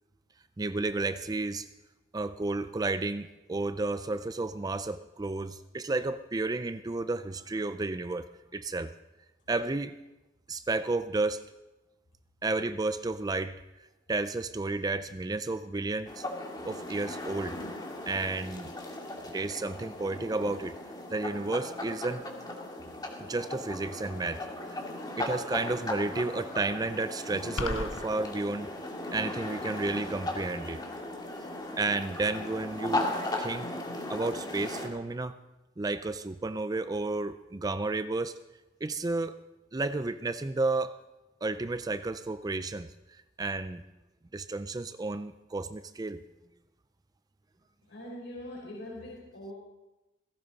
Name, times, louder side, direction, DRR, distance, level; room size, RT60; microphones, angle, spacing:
voice 1, 0.6-1.7 2.1-8.3 8.5-8.9 9.5-9.9 10.5-11.5 12.4-13.6 14.1-16.2 16.6-17.6 18.1-18.7 19.3-20.8 21.1-22.2 23.2-24.8 25.2-28.7 29.1-30.8 31.8-33.7 34.1-35.4 35.8-38.4 38.8-39.4 39.7-41.0 41.4-42.9 43.4-43.8 44.3-46.2, right 3 dB, 20° right, 12 dB, 0.4 m, -32 dB
sound 1, 16.1-34.9, left 1 dB, 20° left, 2.2 m, -37 dB
sound 2, 27.6-28.1, left 2 dB, 85° left, 1.2 m, -32 dB
voice 2, 47.9-49.5, left 1 dB, 70° left, -5 dB, 4.7 m, -42 dB
17.5 x 16.5 x 4.0 m, 1.0 s
head